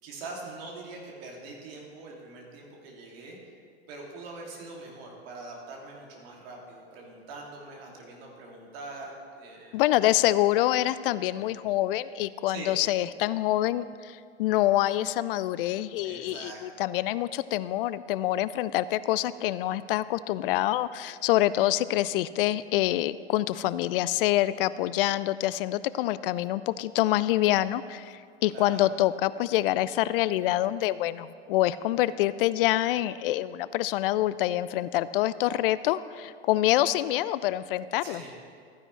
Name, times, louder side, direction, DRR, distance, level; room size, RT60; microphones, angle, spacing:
voice 1, 0.0-3.4 3.9-9.8 10.1-10.2 12.5-12.8 16.0-16.8 28.5-28.9 38.0-38.3, right 3 dB, 60° right, -1 dB, 2.5 m, -43 dB
voice 2, 9.7-38.2, left 14 dB, 55° left, 17 dB, 0.4 m, -26 dB
14.0 x 9.7 x 3.2 m, 2.2 s
figure-of-eight pair, 85°, 33 cm